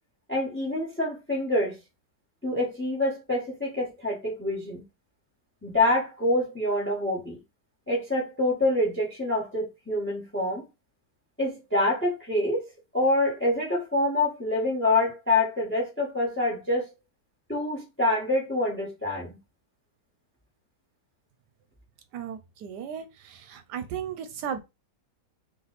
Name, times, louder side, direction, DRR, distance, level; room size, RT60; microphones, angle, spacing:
voice 1, 0.3-1.7 2.4-4.8 5.6-7.4 7.9-10.6 11.4-12.6 12.9-16.9 17.5-19.4, left 1 dB, 10° left, 1.2 m, -26 dB
voice 2, 22.1-24.6, right 8 dB, 80° right, 1.1 m, -35 dB
3.2 x 3.1 x 4.0 m
omnidirectional pair, 1.8 m